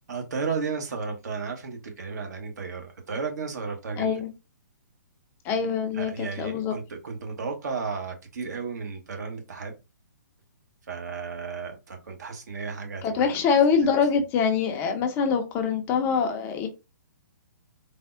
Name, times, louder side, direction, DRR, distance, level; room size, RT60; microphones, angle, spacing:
voice 1, 0.1-4.1 5.9-9.7 10.9-13.4, right 5 dB, 60° right, 0.9 m, -33 dB
voice 2, 4.0-4.3 5.4-6.1 6.4-6.7 13.0-16.7, left 6 dB, 20° left, 0.4 m, -24 dB
3.4 x 2.0 x 2.4 m
figure-of-eight pair, 130°, 10 cm